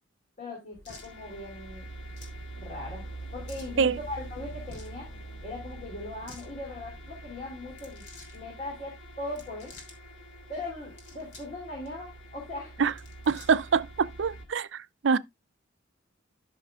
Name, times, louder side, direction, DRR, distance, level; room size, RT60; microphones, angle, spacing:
voice 1, 0.4-1.9 2.5-5.1 5.4-8.0 8.3-9.7 10.5-12.8, left 2 dB, 40° left, 3.1 m, -39 dB
sound 1, 0.7-14.4, right 1 dB, 80° left, 2.6 m, -45 dB
sound 2, 0.8-1.1 2.1-2.4 3.5-3.8 4.6-5.0 6.1-6.5 7.7-8.4 9.3-10.0 10.8-11.6 11.9-12.0 12.8-13.7, left 3 dB, 60° left, 3.2 m, -50 dB
voice 2, 13.3-15.2, right 5 dB, 65° right, 0.5 m, -25 dB
13.5 x 6.5 x 2.4 m
head